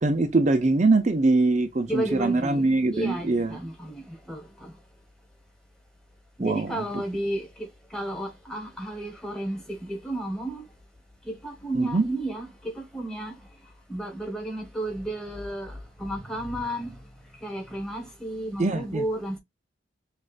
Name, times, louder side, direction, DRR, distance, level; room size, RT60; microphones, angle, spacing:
voice 1, 0.0-3.6 6.4-7.0 11.7-12.0 18.6-19.0, right 3 dB, 40° right, 0.6 m, -23 dB
voice 2, 1.9-4.7 6.4-10.7 11.2-13.4 13.9-16.9 17.4-19.4, right 1 dB, 5° left, 1.3 m, -33 dB
6.3 x 2.5 x 2.4 m
head